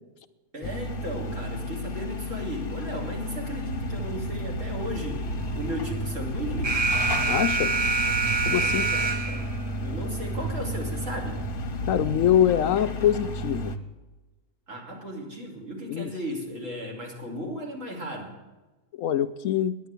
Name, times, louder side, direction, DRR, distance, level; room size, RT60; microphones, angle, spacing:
voice 1, 0.5-6.8 8.6-9.5 9.8-11.4 14.7-18.4, equal, 55° right, -1 dB, 3.4 m, -36 dB
sound 1, 0.6-13.8, left 1 dB, 40° left, 1.1 m, -33 dB
sound 2, 3.7-12.3, right 3 dB, 75° right, 1.6 m, -37 dB
Alarm, 6.6-9.6, right 4 dB, 35° right, 0.7 m, -25 dB
voice 2, 7.3-7.7 8.5-8.9 11.9-13.7 15.9-16.1 19.0-19.8, left 10 dB, 70° left, 10 dB, 0.9 m, -24 dB
10.5 x 9.7 x 8.1 m, 1.1 s
omnidirectional pair, 1.6 m